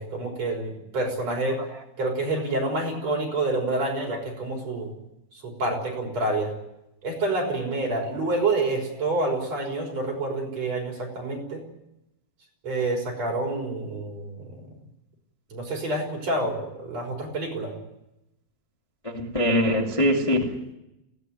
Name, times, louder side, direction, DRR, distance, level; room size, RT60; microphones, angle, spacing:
voice 1, 0.0-1.6 2.0-4.9 5.4-6.5 7.0-11.6 12.6-14.6 15.5-17.7, right 2 dB, 45° right, 6.6 m, -28 dB
voice 2, 19.0-20.7, equal, 10° left, 1.9 m, -23 dB
21.5 x 17.5 x 9.5 m
omnidirectional pair, 4.3 m